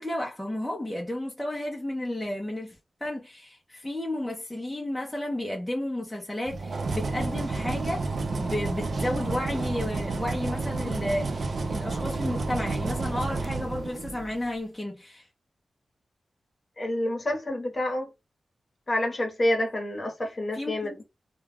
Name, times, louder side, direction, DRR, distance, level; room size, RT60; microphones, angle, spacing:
voice 1, 0.0-8.1 8.4-15.3 20.5-21.0, left 1 dB, 5° left, 0.5 m, -32 dB
sound 1, 6.5-14.4, right 3 dB, 50° right, 0.4 m, -30 dB
voice 2, 16.8-18.1 18.9-21.0, left 1 dB, 30° left, 0.9 m, -28 dB
2.2 x 2.2 x 3.3 m
wide cardioid pair, 160°, 0 cm